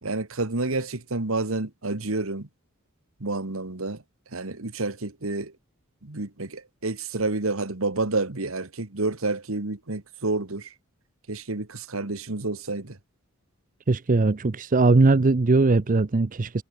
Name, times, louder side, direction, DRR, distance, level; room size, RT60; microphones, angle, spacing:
voice 1, 0.0-2.5 3.2-5.5 6.0-10.7 11.3-13.0, right 2 dB, 70° right, 1.8 m, -29 dB
voice 2, 13.9-16.6, right 3 dB, 40° right, 0.6 m, -20 dB
head